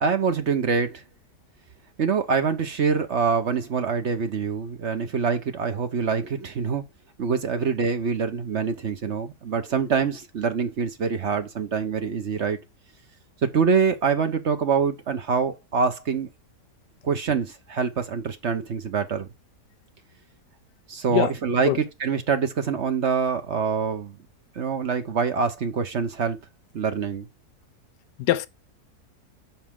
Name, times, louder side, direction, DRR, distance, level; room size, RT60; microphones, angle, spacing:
voice 1, 0.0-1.0 2.0-6.8 7.2-12.6 13.4-16.3 17.0-19.3 20.9-21.7 22.0-24.1 24.6-26.4 26.7-27.3, right 5 dB, 50° right, 1.1 m, -25 dB
voice 2, 21.1-21.3 21.6-21.8 28.2-28.5, left 14 dB, 90° left, 1.3 m, -23 dB
7.4 x 5.9 x 3.7 m
omnidirectional pair, 1.7 m